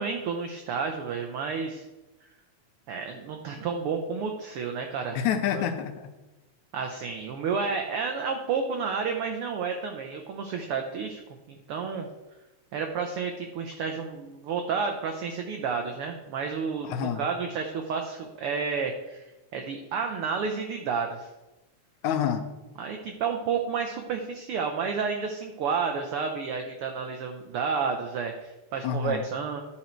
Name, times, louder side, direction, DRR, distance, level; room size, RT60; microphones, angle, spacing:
voice 1, 0.0-1.9 2.9-5.2 5.5-5.6 6.7-11.2 11.5-12.1 12.7-19.2 19.5-21.3 22.8-29.6, right 5 dB, 90° right, 3 dB, 1.2 m, -31 dB
voice 2, 5.2-6.1 16.8-17.2 22.0-22.5 28.8-29.2, left 8 dB, 85° left, 8 dB, 2.1 m, -28 dB
11.5 x 4.3 x 4.4 m, 1.1 s
omnidirectional pair, 3.3 m